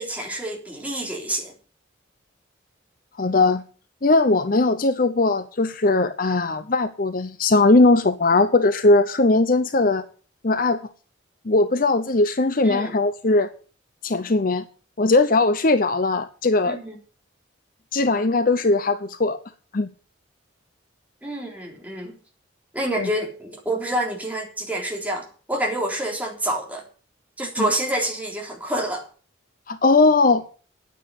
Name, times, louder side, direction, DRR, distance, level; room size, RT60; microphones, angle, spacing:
voice 1, 0.0-1.5 12.6-12.9 16.6-17.0 21.2-22.1 22.7-26.9 27.4-29.0, right 1 dB, 10° right, 3.6 m, -27 dB
voice 2, 3.2-3.6 4.0-10.0 10.4-10.8 11.4-13.5 14.0-14.6 15.0-16.8 17.9-19.4 19.7-19.9 23.0-23.1 27.6-27.7 29.7-30.4, left 3 dB, 45° left, 0.7 m, -19 dB
10.0 x 9.3 x 8.3 m
head